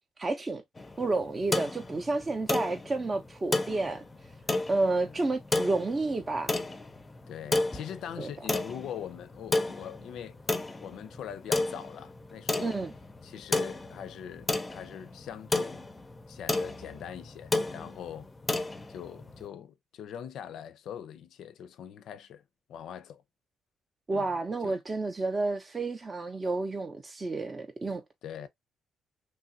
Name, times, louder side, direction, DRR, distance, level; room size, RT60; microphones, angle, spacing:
voice 1, 0.2-0.6 1.0-4.0 4.7-6.5 8.2-8.3 12.6-12.9 24.1-28.0, right 3 dB, 30° right, 0.5 m, -30 dB
sound 1, 0.8-19.5, left 2 dB, 20° left, 0.5 m, -33 dB
voice 2, 7.3-10.4 10.8-12.8 13.2-15.8 16.3-18.3 18.9-22.4 22.7-23.2 24.1-24.4 24.6-24.8 28.2-28.5, left 9 dB, 75° left, 0.4 m, -42 dB
3.1 x 2.4 x 2.6 m
cardioid pair, 90°, 0 cm